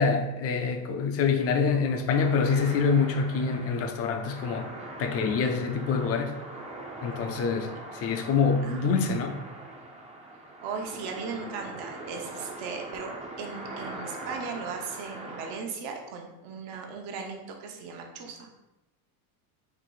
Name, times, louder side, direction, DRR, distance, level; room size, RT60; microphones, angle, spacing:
voice 1, 0.0-4.7 5.0-6.3 7.0-9.4, left 5 dB, 35° left, 5 dB, 0.5 m, -26 dB
sound 1, 2.2-15.6, right 2 dB, 15° right, 0.5 m, -42 dB
voice 2, 8.7-9.2 10.6-13.1 13.4-18.5, right 5 dB, 65° right, 2 dB, 0.9 m, -37 dB
4.6 x 2.5 x 3.9 m, 0.99 s
cardioid pair, 135°, 44 cm